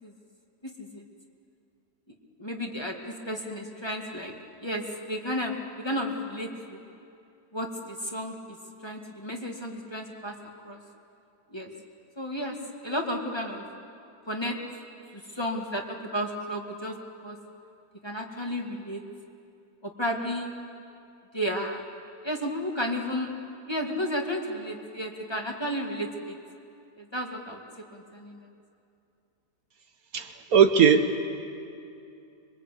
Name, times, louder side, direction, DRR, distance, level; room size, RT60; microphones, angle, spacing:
voice 1, 0.6-1.0 2.1-4.3 4.6-6.8 7.5-8.6 8.8-10.3 10.6-10.8 11.5-11.7 12.2-12.6 12.8-13.7 14.3-14.6 15.1-17.4 18.0-19.0 19.8-20.5 21.3-21.8 22.2-23.3 23.7-26.4 27.0-27.6 27.9-28.5, equal, 15° left, 1 dB, 1.9 m, -33 dB
voice 2, 30.1-31.2, right 7 dB, 65° right, 7 dB, 1.4 m, -19 dB
26.0 x 23.0 x 8.4 m, 2.6 s
omnidirectional pair, 1.7 m